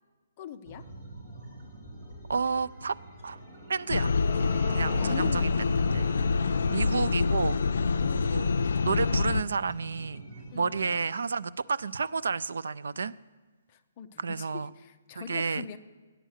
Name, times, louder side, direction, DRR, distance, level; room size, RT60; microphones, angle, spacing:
voice 1, 0.4-0.9 5.0-6.0 6.3-6.5 7.5-8.4 10.5-10.8 13.7-15.8, left 8 dB, 20° left, 7 dB, 0.6 m, -43 dB
sound 1, 0.6-11.1, right 1 dB, 25° right, 2.9 m, -46 dB
voice 2, 2.3-3.0 3.2-3.4 3.7-4.1 4.7-6.1 6.7-7.6 8.3-8.5 8.8-10.2 10.5-13.1 14.2-14.7 15.2-15.6, right 5 dB, 85° right, 17 dB, 0.4 m, -31 dB
sound 2, 3.4-9.9, left 3 dB, 5° left, 2.5 m, -42 dB
sound 3, 3.9-9.4, left 4 dB, 80° left, 0.4 m, -26 dB
14.5 x 10.0 x 6.4 m, 1.4 s
hypercardioid pair, 180°, 0 cm